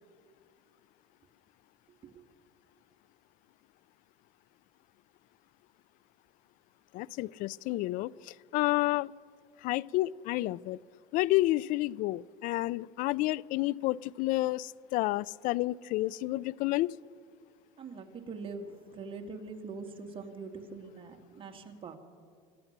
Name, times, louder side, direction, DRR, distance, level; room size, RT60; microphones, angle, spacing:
voice 1, 6.9-9.1 9.6-10.8 11.1-17.0, left 18 dB, 65° left, 23 dB, 0.4 m, -30 dB
voice 2, 17.8-22.0, right 4 dB, 35° right, 4 dB, 2.3 m, -43 dB
26.0 x 15.0 x 6.8 m, 2.1 s
supercardioid pair, 105°, 15 cm